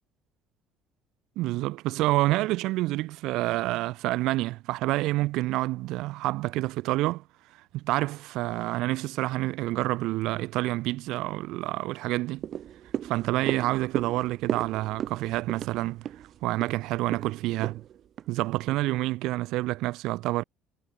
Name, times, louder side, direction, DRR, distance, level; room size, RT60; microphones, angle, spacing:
voice 1, 1.4-7.2 7.7-12.4 13.0-16.1 16.4-17.8 18.3-20.4, right 18 dB, 70° right, 6.6 m, -28 dB
sound 1, 12.4-18.9 19.3-19.4, right 10 dB, 45° right, 6.3 m, -36 dB
cardioid pair, 140°, 0 cm